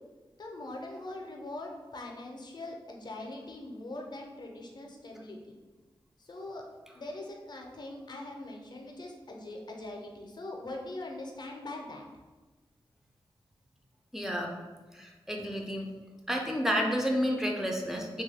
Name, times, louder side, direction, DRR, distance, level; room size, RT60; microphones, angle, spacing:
voice 1, 0.4-5.5 6.2-6.6 6.9-12.1, left 2 dB, 45° left, 1 dB, 0.5 m, -42 dB
voice 2, 14.1-14.5 14.9-15.9 16.3-18.2, equal, 5° right, 0 dB, 0.4 m, -30 dB
3.0 x 2.3 x 3.4 m, 1.3 s
wide cardioid pair, 105°, 10 cm